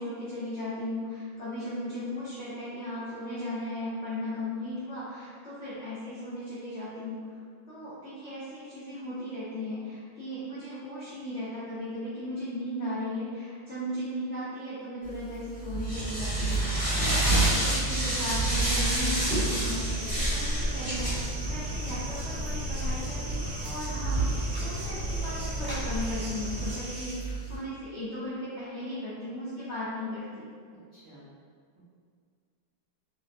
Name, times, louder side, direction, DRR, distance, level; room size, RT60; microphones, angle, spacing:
voice 1, 0.0-7.4 7.7-21.1 21.4-30.5, left 1 dB, 70° left, -11 dB, 0.6 m, -36 dB
sound 1, 15.1-27.6, right 2 dB, 35° left, 0.9 m, -30 dB
sound 2, 15.9-26.8, equal, 10° right, 0.4 m, -38 dB
sound 3, 17.9-27.1, equal, 85° right, 1.4 m, -37 dB
voice 2, 30.9-31.3 31.8-31.9, right 2 dB, 55° right, -14 dB, 0.7 m, -51 dB
3.2 x 2.0 x 2.6 m, 2.1 s
omnidirectional pair, 2.0 m